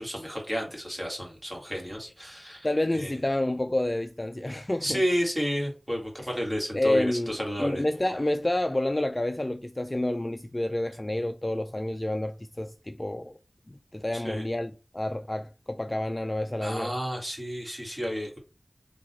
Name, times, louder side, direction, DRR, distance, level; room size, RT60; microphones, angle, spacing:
voice 1, 0.0-2.7 2.9-3.2 4.8-7.8 14.1-14.4 16.6-18.4, equal, 15° right, 1.9 m, -31 dB
voice 2, 2.6-5.0 6.7-13.3 13.7-16.9, left 1 dB, 25° left, 0.3 m, -29 dB
3.9 x 2.8 x 4.3 m
wide cardioid pair, 70°, 0 cm